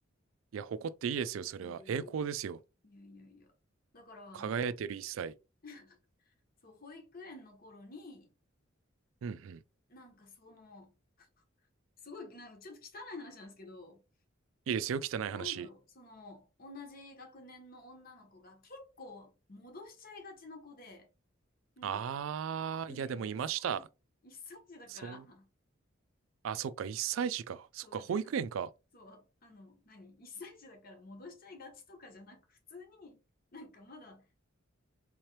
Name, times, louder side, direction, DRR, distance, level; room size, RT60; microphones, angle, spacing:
voice 1, 0.5-2.6 4.3-5.3 9.2-9.6 14.7-15.7 21.8-23.8 24.9-25.2 26.4-28.7, right 7 dB, 80° right, 0.3 m, -35 dB
voice 2, 1.6-2.3 2.8-3.5 3.9-4.6 5.6-6.0 6.6-8.3 9.9-11.3 12.0-14.0 15.3-21.1 21.8-22.0 22.8-23.8 24.2-25.5 27.2-27.3 27.8-28.2 28.9-33.2 33.5-34.4, left 3 dB, 45° left, 1.1 m, -51 dB
3.6 x 2.9 x 3.1 m
head